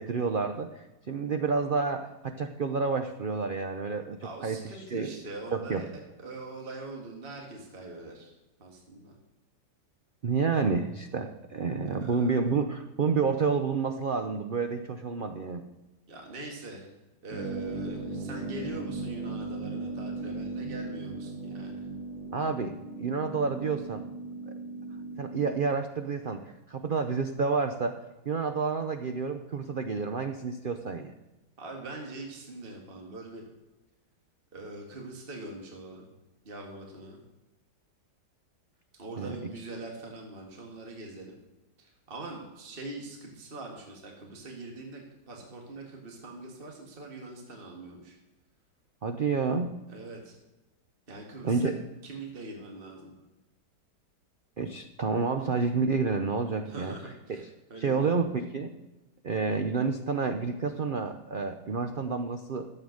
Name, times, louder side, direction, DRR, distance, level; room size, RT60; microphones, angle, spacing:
voice 1, 0.0-4.6 4.9-5.2 5.5-5.8 10.2-15.6 22.3-24.1 24.5-24.6 25.2-28.0 28.3-31.1 39.2-39.4 49.0-49.7 51.4-51.8 54.6-56.9 57.3-57.4 57.8-58.7 59.2-62.7, right 4 dB, 80° right, 7 dB, 0.4 m, -29 dB
voice 2, 4.2-5.9 6.2-8.3 8.6-9.1 12.0-12.4 16.1-16.9 17.2-21.8 31.6-33.5 34.5-36.1 36.5-37.2 39.0-41.4 41.8-48.2 49.9-50.4 51.1-51.7 52.0-53.1 56.7-58.4, right 2 dB, 30° right, 0 dB, 1.9 m, -43 dB
sound 1, 17.3-25.5, right 2 dB, 60° right, 2.8 m, -37 dB
13.0 x 7.8 x 6.4 m, 1.0 s
omnidirectional pair, 1.9 m